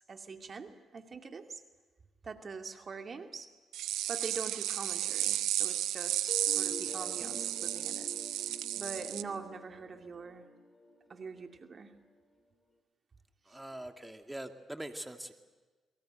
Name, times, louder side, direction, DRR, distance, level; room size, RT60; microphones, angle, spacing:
voice 1, 0.0-1.6 2.2-3.5 4.1-10.5 11.1-12.0 13.5-13.6, right 4 dB, 50° right, 5 dB, 2.4 m, -44 dB
Airport Scanner, 3.7-9.2, right 13 dB, 80° right, 1.0 m, -33 dB
sound 1, 6.3-12.1, left 1 dB, 30° left, 5.2 m, -47 dB
voice 2, 13.5-15.3, right 1 dB, 10° right, 5 dB, 2.5 m, -43 dB
28.5 x 23.5 x 7.9 m, 1.3 s
hypercardioid pair, 50°, 0 cm